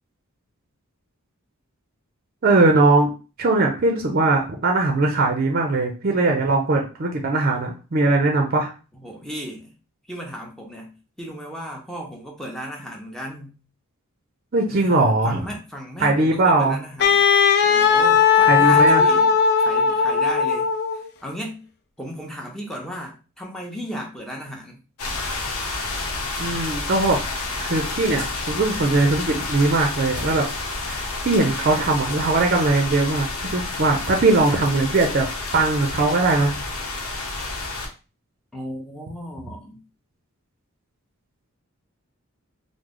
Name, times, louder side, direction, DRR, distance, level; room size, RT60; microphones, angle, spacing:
voice 1, 2.4-3.1 3.4-8.7 14.5-15.4 16.0-16.8 18.4-19.0 26.4-27.2 27.6-30.4 30.9-35.3 35.5-36.6, right 2 dB, 45° right, 2 dB, 0.5 m, -20 dB
voice 2, 8.9-9.7 10.1-13.6 14.7-17.2 17.6-19.3 19.6-20.7 21.2-21.7 22.0-24.8 38.5-39.8, equal, 5° left, 0 dB, 0.7 m, -35 dB
Wind instrument woodwind instrument, 17.0-21.1, left 6 dB, 50° left, 0.4 m, -17 dB
sound 1, 25.0-37.9, left 3 dB, 85° left, 0.8 m, -30 dB
3.1 x 2.1 x 3.7 m, 0.33 s
head